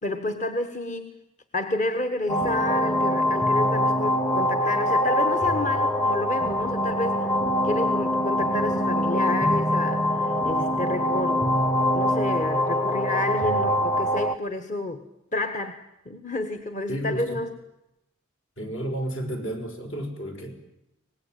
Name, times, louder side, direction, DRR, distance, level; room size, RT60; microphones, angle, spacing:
voice 1, 0.0-1.1 1.5-7.4 7.6-11.5 11.9-15.0 15.3-17.5, left 2 dB, 40° left, 7 dB, 1.3 m, -30 dB
sound 1, 2.3-14.3, left 1 dB, 15° left, 0.8 m, -24 dB
voice 2, 16.9-17.4 18.6-20.8, equal, 65° left, 4 dB, 5.4 m, -32 dB
25.0 x 19.5 x 9.1 m, 0.89 s
head